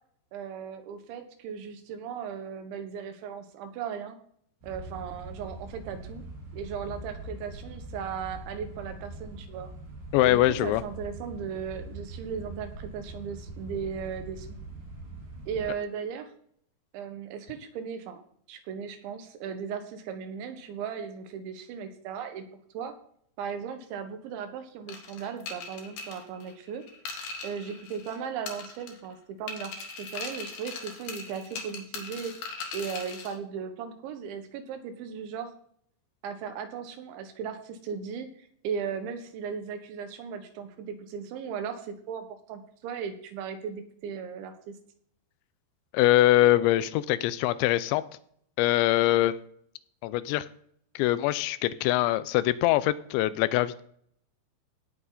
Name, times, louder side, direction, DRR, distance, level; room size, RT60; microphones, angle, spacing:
voice 1, 0.3-4.2 4.6-6.2 6.5-9.7 10.2-14.5 15.5-16.3 16.9-18.2 18.5-22.5 22.7-22.9 23.4-26.8 27.4-29.7 30.0-32.3 32.7-35.5 36.2-44.8, right 7 dB, 85° right, 7 dB, 3.7 m, -37 dB
sound 1, 4.6-15.7, right 2 dB, 55° right, 6.0 m, -42 dB
voice 2, 10.1-10.8 45.9-48.0 48.6-49.4 50.0-50.5 51.0-53.8, left 15 dB, 90° left, 16 dB, 3.0 m, -23 dB
sound 2, 24.9-28.2 28.5-29.1 29.5-33.3, left 4 dB, 65° left, 3.6 m, -40 dB
17.5 x 7.4 x 4.1 m, 0.64 s
omnidirectional pair, 5.2 m